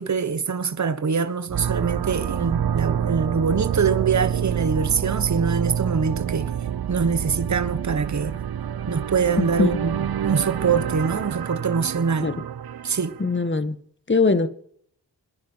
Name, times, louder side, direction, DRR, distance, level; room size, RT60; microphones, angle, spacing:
voice 1, 0.0-6.5 6.9-8.4 8.9-12.3 12.8-13.1, right 5 dB, 40° right, 1.3 m, -24 dB
sound 1, 1.5-13.4, right 9 dB, 60° right, 0.7 m, -27 dB
voice 2, 9.4-9.7 12.2-12.3 13.2-13.8 14.1-14.5, left 3 dB, 25° left, 1.7 m, -21 dB
27.5 x 10.5 x 4.7 m
cardioid pair, 50°, 42 cm